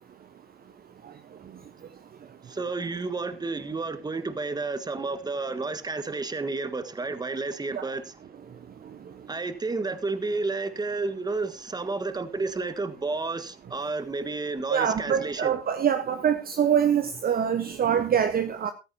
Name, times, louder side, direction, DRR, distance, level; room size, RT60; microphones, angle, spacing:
voice 1, 2.5-8.2 9.3-15.6, right 3 dB, 15° right, 1.5 m, -31 dB
voice 2, 14.7-18.7, right 8 dB, 30° right, 1.1 m, -24 dB
15.0 x 13.5 x 2.8 m
hypercardioid pair, 95°, 31 cm